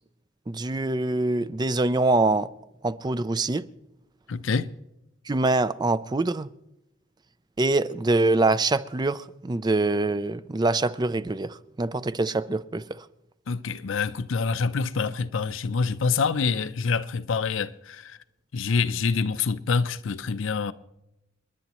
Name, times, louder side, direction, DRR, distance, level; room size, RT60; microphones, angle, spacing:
voice 1, 0.5-2.5 2.8-3.6 5.3-6.5 7.6-13.0, right 2 dB, 20° right, 0.4 m, -24 dB
voice 2, 4.3-4.7 13.5-18.2 18.5-20.7, left 5 dB, 75° left, 0.6 m, -26 dB
28.5 x 10.5 x 3.0 m
head